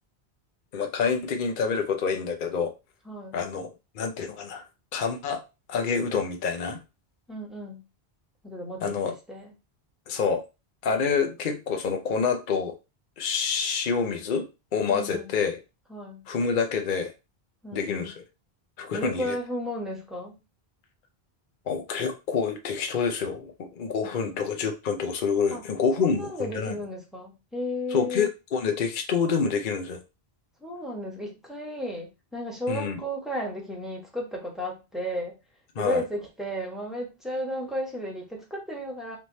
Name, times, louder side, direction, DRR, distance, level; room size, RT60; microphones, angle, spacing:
voice 1, 0.7-2.7 3.3-3.7 4.0-4.6 4.9-5.4 5.7-6.8 8.8-9.1 10.1-10.4 10.8-12.7 13.2-15.6 16.3-17.1 17.7-18.2 18.8-19.4 21.7-26.8 27.9-30.0 32.7-33.0 35.8-36.0, left 5 dB, 55° left, 5 dB, 0.8 m, -27 dB
voice 2, 3.0-3.4 7.3-7.8 8.4-9.5 14.9-15.3 15.9-16.3 17.6-18.1 18.9-20.3 24.2-24.4 25.5-25.6 26.0-28.3 30.6-35.3 35.8-39.2, equal, ahead, -1 dB, 1.2 m, -34 dB
3.2 x 3.2 x 4.0 m, 0.27 s
omnidirectional pair, 1.1 m